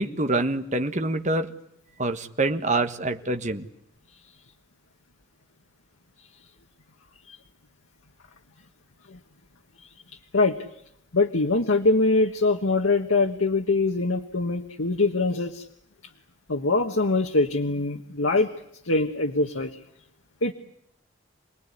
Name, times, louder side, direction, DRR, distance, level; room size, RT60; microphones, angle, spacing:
voice 1, 0.0-1.5 2.0-3.7, right 2 dB, 35° right, 7 dB, 1.5 m, -26 dB
voice 2, 11.1-15.7 16.5-18.5 18.8-19.8 20.4-20.5, left 3 dB, 85° left, 3 dB, 1.5 m, -23 dB
28.5 x 19.5 x 9.8 m, 0.76 s
head